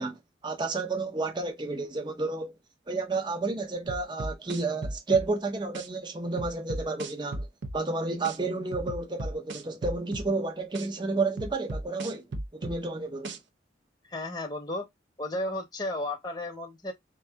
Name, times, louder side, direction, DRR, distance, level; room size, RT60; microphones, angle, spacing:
voice 1, 0.0-2.5 2.9-7.5 7.7-12.2 12.5-13.4, right 3 dB, 25° right, 0.6 m, -31 dB
sound 1, 3.9-5.3 5.7-5.9 6.4-7.8 8.2-8.4 8.7-10.3 10.7-10.9 11.4-12.8 13.2-13.4, right 2 dB, 80° right, 0.7 m, -35 dB
voice 2, 14.1-14.9 15.2-16.9, left 1 dB, 20° left, 0.7 m, -33 dB
3.8 x 2.6 x 3.4 m
head